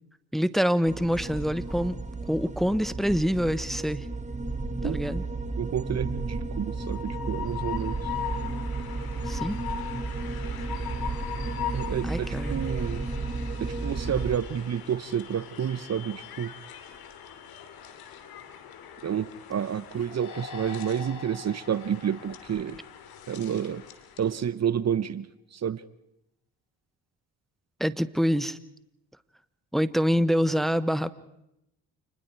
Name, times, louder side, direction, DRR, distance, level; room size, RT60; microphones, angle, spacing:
voice 1, 0.3-4.1 4.8-5.2 9.2-9.6 12.0-12.6 27.8-28.6 29.7-31.1, equal, ahead, 15 dB, 1.1 m, -26 dB
sound 1, 0.8-14.4, right 3 dB, 20° right, 2.3 m, -33 dB
voice 2, 5.6-8.0 11.7-13.1 13.6-16.5 19.0-22.8 23.3-23.8 24.2-25.3 25.5-25.8, right 8 dB, 45° right, 17 dB, 1.0 m, -29 dB
Train, 6.6-24.4, left 10 dB, 75° left, 2.8 m, -41 dB
sound 2, 20.1-23.5, left 6 dB, 55° left, 4.2 m, -44 dB
28.5 x 20.5 x 4.7 m, 0.82 s
hypercardioid pair, 55°, 37 cm